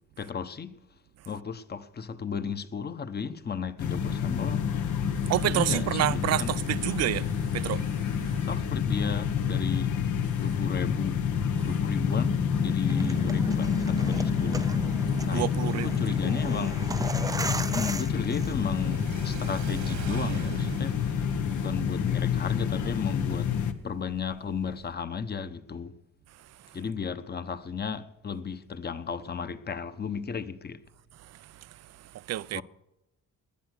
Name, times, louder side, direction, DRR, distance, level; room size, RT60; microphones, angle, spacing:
voice 1, 0.2-0.7 1.3-4.7 5.5-6.5 8.4-9.9 10.4-11.2 11.6-14.7 15.2-16.9 17.7-21.1 21.4-23.5 23.8-25.9 26.7-30.8 32.5-32.6, left 6 dB, 35° left, 1.1 m, -34 dB
sound 1, 3.8-23.7, left 7 dB, 75° left, 1.5 m, -28 dB
voice 2, 5.3-8.4 15.2-16.7 31.2-32.6, right 13 dB, 60° right, 0.5 m, -30 dB
sound 2, 12.8-19.0, right 3 dB, 10° right, 0.5 m, -37 dB
Car / Accelerating revving vroom, 15.5-24.9, right 9 dB, 80° right, 2.1 m, -42 dB
18.5 x 10.5 x 6.5 m
cardioid pair, 90°, 30 cm